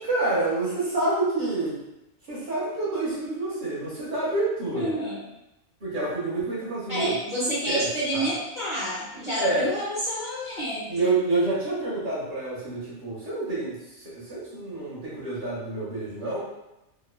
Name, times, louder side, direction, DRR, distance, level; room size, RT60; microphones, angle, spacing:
voice 1, 0.0-1.7 2.3-4.9 5.8-7.2 7.7-8.3 9.4-9.6 10.9-16.4, right 2 dB, 45° right, -7 dB, 0.8 m, -28 dB
voice 2, 4.7-5.2 6.9-11.1, equal, 50° left, -9 dB, 0.6 m, -29 dB
2.9 x 2.1 x 2.2 m, 0.93 s
omnidirectional pair, 1.4 m